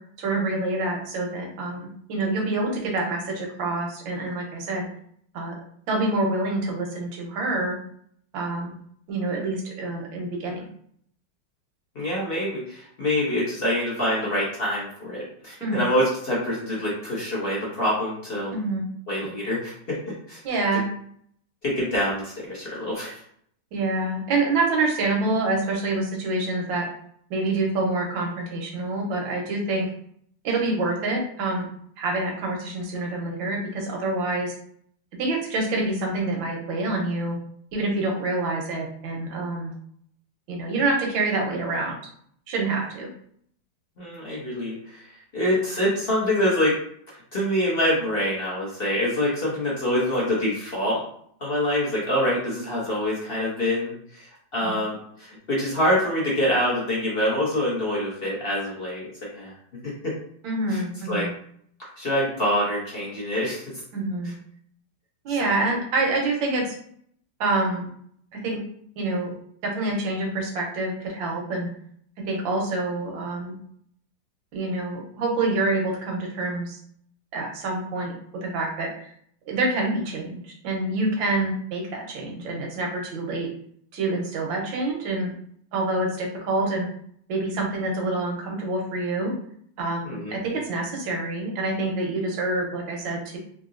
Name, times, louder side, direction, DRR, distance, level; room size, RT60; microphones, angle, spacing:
voice 1, 0.2-4.9 5.3-5.5 5.9-7.8 8.3-8.7 9.1-10.7 15.6-15.8 18.5-18.8 20.4-20.9 23.7-26.9 27.3-29.9 30.4-31.7 32.0-34.5 35.2-37.4 37.7-39.7 40.5-42.0 42.5-43.1 54.6-54.8 60.4-61.3 63.9-64.3 65.2-66.7 67.4-67.9 68.3-68.6 69.0-69.3 69.6-71.7 72.3-73.5 74.5-76.8 77.3-78.1 78.4-79.1 79.5-83.5 83.9-85.3 85.7-86.9 87.3-89.3 89.8-93.4, right 2 dB, 80° right, 0 dB, 1.6 m, -26 dB
voice 2, 11.9-18.5 19.1-20.0 20.3-20.4 21.6-23.2 44.0-45.0 45.3-46.8 47.3-51.0 51.4-59.0 59.3-59.5 60.0-60.1 60.7-60.8 61.1-61.3 62.0-63.6 65.4-65.5 90.0-90.4, left 1 dB, 45° left, -6 dB, 0.8 m, -25 dB
3.8 x 2.7 x 2.4 m, 0.63 s
omnidirectional pair, 2.1 m